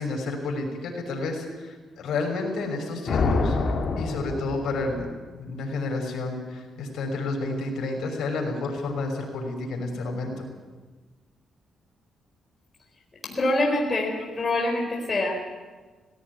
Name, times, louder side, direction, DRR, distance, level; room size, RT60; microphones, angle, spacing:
voice 1, 0.0-3.6 4.0-10.5, left 3 dB, 80° left, 1 dB, 6.0 m, -30 dB
sound 1, 3.1-5.0, left 3 dB, 45° left, 3.5 m, -26 dB
voice 2, 13.2-15.4, left 2 dB, 25° left, -1 dB, 4.2 m, -25 dB
18.5 x 17.0 x 9.7 m, 1.4 s
cardioid pair, 135°, 0 cm